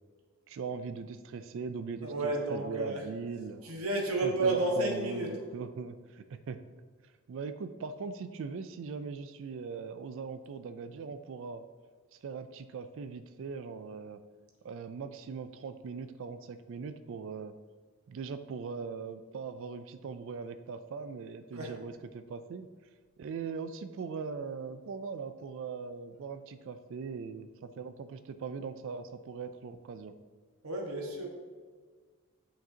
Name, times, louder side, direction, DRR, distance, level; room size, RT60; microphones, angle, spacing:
voice 1, 0.5-3.6 4.2-6.6 7.3-11.6 12.2-14.2 14.6-17.5 18.1-22.7 23.2-30.1, right 5 dB, 60° right, 10 dB, 0.3 m, -40 dB
voice 2, 2.0-3.0 3.6-5.3 21.5-21.7 30.6-31.3, right 2 dB, 80° right, 0 dB, 1.4 m, -31 dB
7.5 x 5.9 x 2.8 m, 1.5 s
head